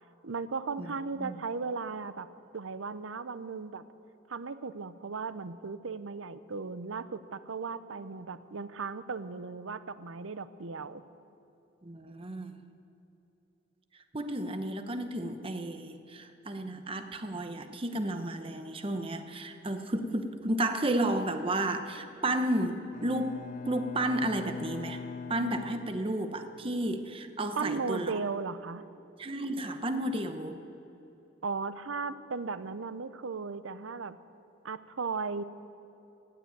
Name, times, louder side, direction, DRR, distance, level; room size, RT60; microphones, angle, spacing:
voice 1, 0.2-3.8 4.3-11.0 27.6-28.8 31.4-34.2 34.6-35.4, right 4 dB, 85° right, 13 dB, 0.7 m, -36 dB
voice 2, 11.8-12.5 14.1-25.0 25.3-28.2 29.2-30.6, right 1 dB, 30° right, 7 dB, 0.9 m, -32 dB
Bowed string instrument, 22.9-26.5, left 5 dB, 40° left, 0.3 m, -42 dB
16.0 x 7.8 x 9.3 m, 3.0 s
head